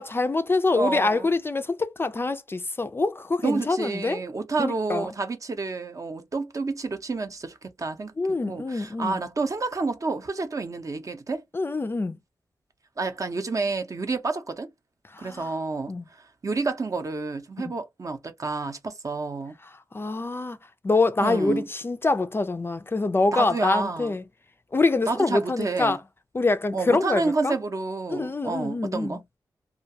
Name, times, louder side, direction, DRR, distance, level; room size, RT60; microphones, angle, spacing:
voice 1, 0.0-4.2 4.6-5.1 8.2-9.2 11.5-12.2 15.1-15.5 15.9-16.0 19.9-20.6 20.8-24.2 24.7-26.0 26.3-27.5 28.1-29.2, left 3 dB, 30° left, 0.3 m, -25 dB
voice 2, 0.8-1.3 3.4-8.1 8.5-11.4 13.0-14.7 15.2-19.6 21.2-21.7 23.3-24.2 25.1-26.0 26.7-29.2, right 3 dB, 45° right, 0.5 m, -29 dB
2.3 x 2.2 x 2.6 m
cardioid pair, 60°, 8 cm